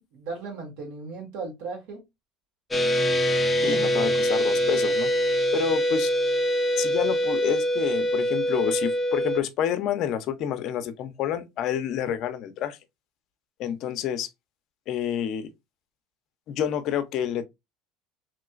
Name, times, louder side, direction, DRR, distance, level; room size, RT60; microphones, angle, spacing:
voice 1, 0.1-2.0 3.6-4.1, right 4 dB, 75° right, 1.6 m, -37 dB
sound 1, 2.7-9.4, equal, 5° left, 0.5 m, -24 dB
voice 2, 3.6-5.1 5.5-6.1 6.8-12.8 13.6-14.3 14.9-15.5 16.5-17.4, left 10 dB, 55° left, 0.5 m, -28 dB
3.1 x 2.9 x 2.4 m
supercardioid pair, 120°, 0 cm